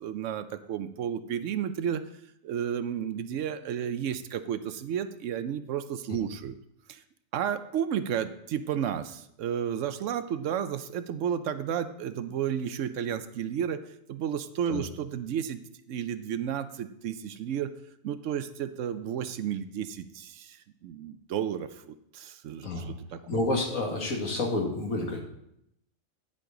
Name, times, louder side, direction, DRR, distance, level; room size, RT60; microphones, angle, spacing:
voice 1, 0.0-2.0 2.4-6.6 6.9-7.0 7.3-13.8 14.1-15.6 15.9-17.7 18.0-23.2, right 9 dB, 70° right, 11 dB, 0.9 m, -32 dB
voice 2, 23.3-25.2, left 2 dB, 85° left, 0 dB, 2.1 m, -29 dB
9.8 x 7.6 x 3.8 m, 0.76 s
omnidirectional pair, 1.4 m